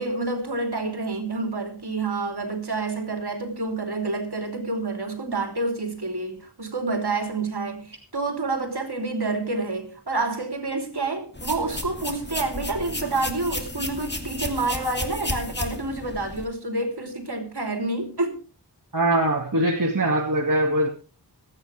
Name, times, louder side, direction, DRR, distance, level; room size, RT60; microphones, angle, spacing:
voice 1, 0.0-18.4, right 3 dB, 70° right, 3.3 m, -28 dB
sound 1, 11.3-16.4, left 1 dB, 25° left, 2.4 m, -33 dB
voice 2, 18.9-20.9, right 1 dB, 50° right, 2.2 m, -22 dB
26.0 x 9.0 x 3.4 m
wide cardioid pair, 45°, 41 cm